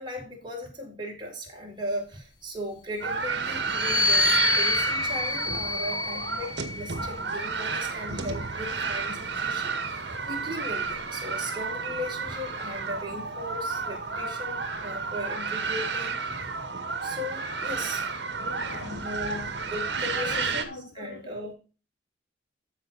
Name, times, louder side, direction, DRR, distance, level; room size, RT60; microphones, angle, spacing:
voice 1, 0.0-16.5 17.0-18.1 18.7-21.5, equal, 25° right, -1 dB, 4.5 m, -37 dB
sound 1, 3.0-20.6, right 4 dB, 65° right, 1.9 m, -31 dB
sound 2, 3.6-7.2 8.1-9.7, left 2 dB, 25° left, 1.1 m, -28 dB
voice 2, 18.4-19.1 19.9-21.5, left 3 dB, 80° left, 7 dB, 1.1 m, -43 dB
14.0 x 5.8 x 4.2 m, 0.33 s
head